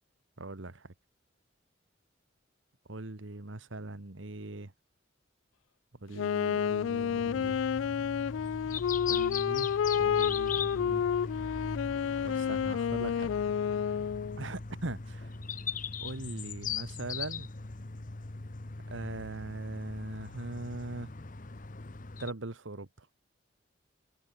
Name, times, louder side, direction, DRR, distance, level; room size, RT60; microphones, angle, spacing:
voice 1, 0.4-0.9 2.9-4.7 6.0-7.6 9.1-9.7 10.0-11.0 12.2-13.3 14.4-15.3 16.0-17.5 18.9-21.1 22.2-23.1, right 2 dB, 85° right, 1.5 m, -40 dB
Wind instrument woodwind instrument, 6.1-14.5, left 8 dB, 80° left, 0.3 m, -30 dB
sound 1, 6.7-22.3, left 5 dB, 45° left, 1.0 m, -40 dB
head